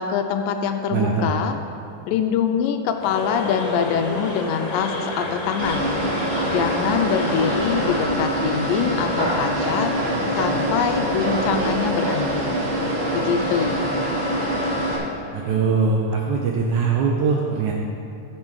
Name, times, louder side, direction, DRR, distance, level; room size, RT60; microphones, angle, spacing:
voice 1, 0.0-1.6 2.1-5.9 6.5-9.9 10.3-12.7 13.1-14.1, left 7 dB, 85° left, 6 dB, 2.2 m, -24 dB
voice 2, 0.9-1.3 15.3-17.7, right 5 dB, 75° right, -1 dB, 1.9 m, -21 dB
sound 1, 3.0-8.1, left 2 dB, 65° left, 2.4 m, -30 dB
sound 2, 5.6-15.0, right 1 dB, 50° right, 2.1 m, -24 dB
10.5 x 6.8 x 4.6 m, 2.7 s
omnidirectional pair, 4.0 m